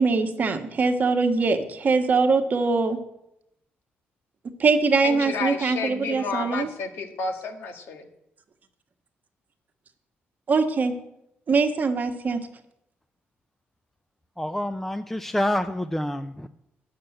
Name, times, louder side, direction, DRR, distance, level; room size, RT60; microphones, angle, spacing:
voice 1, 0.0-3.0 4.6-6.7 10.5-10.9 11.5-12.4, right 4 dB, 45° right, 6 dB, 1.4 m, -22 dB
voice 2, 5.0-8.0, left 4 dB, 75° left, 5 dB, 1.8 m, -31 dB
voice 3, 14.4-16.5, left 1 dB, 5° left, 10 dB, 0.5 m, -27 dB
11.0 x 6.9 x 8.8 m, 0.82 s
cardioid pair, 115°, 4 cm